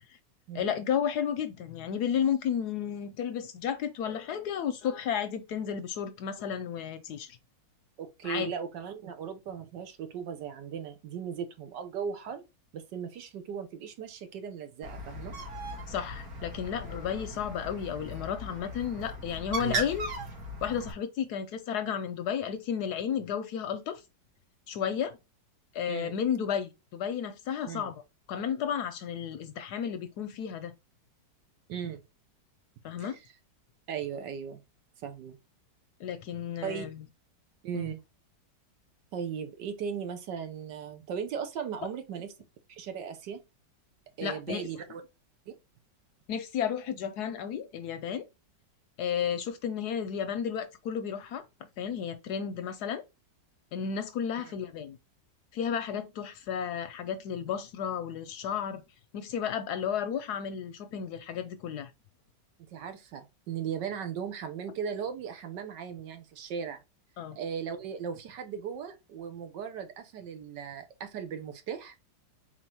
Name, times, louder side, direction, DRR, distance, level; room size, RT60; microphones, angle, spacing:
voice 1, 0.5-7.4 8.2-8.5 15.9-20.1 20.6-24.0 24.7-25.2 25.7-27.9 28.3-30.7 32.8-33.2 36.0-37.0 37.7-37.9 44.2-44.7 46.3-48.2 49.0-51.4 51.8-53.0 53.7-55.0 55.5-58.8 59.1-61.9 67.2-67.4, left 8 dB, 70° left, 1.0 m, -33 dB
voice 2, 8.0-12.4 12.7-15.3 25.9-26.1 27.6-27.9 31.7-32.0 33.0-33.3 33.9-34.6 35.0-35.4 36.6-36.9 37.6-38.0 39.1-42.3 42.7-43.4 44.2-45.0 45.5-45.6 54.4-54.5 62.7-66.8 67.4-71.9, right 7 dB, 75° right, 1.5 m, -37 dB
Bird, 14.8-20.9, right 2 dB, 55° right, 1.7 m, -38 dB
4.3 x 3.8 x 2.9 m
omnidirectional pair, 2.0 m